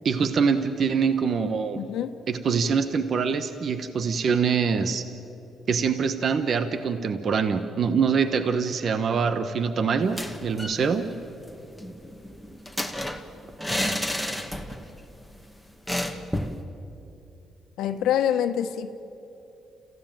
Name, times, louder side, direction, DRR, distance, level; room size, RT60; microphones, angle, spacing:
voice 1, 0.0-1.8 2.3-5.1 5.7-11.1, right 6 dB, 55° right, 9 dB, 1.2 m, -24 dB
voice 2, 1.8-2.1 17.8-18.9, left 10 dB, 85° left, 8 dB, 1.2 m, -25 dB
sound 1, 10.0-10.8 11.1-11.2 11.5-14.9 15.2-15.4 15.9-16.6, left 1 dB, ahead, 1.8 m, -31 dB
30.0 x 15.5 x 9.1 m, 2.9 s
cardioid pair, 90°, 0 cm